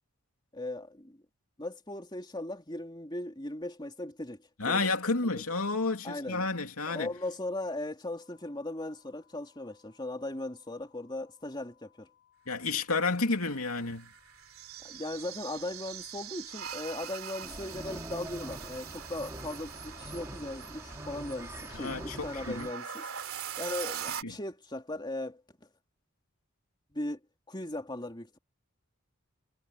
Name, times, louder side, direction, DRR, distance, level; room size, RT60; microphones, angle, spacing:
voice 1, 0.5-1.2 1.6-4.8 5.2-5.4 6.0-6.4 6.9-12.1 14.8-23.1 23.6-25.4 26.9-27.2 27.5-28.4, left 1 dB, 20° left, 3.1 m, -38 dB
voice 2, 4.6-7.1 12.5-14.1 21.7-22.7 24.2-24.3, left 3 dB, 85° left, 2.8 m, -31 dB
sound 1, 8.2-23.2, left 10 dB, 45° left, 6.8 m, -67 dB
sound 2, 13.3-24.2, right 8 dB, 75° right, 3.1 m, -43 dB
sound 3, 17.4-22.7, right 1 dB, 15° right, 3.1 m, -44 dB
head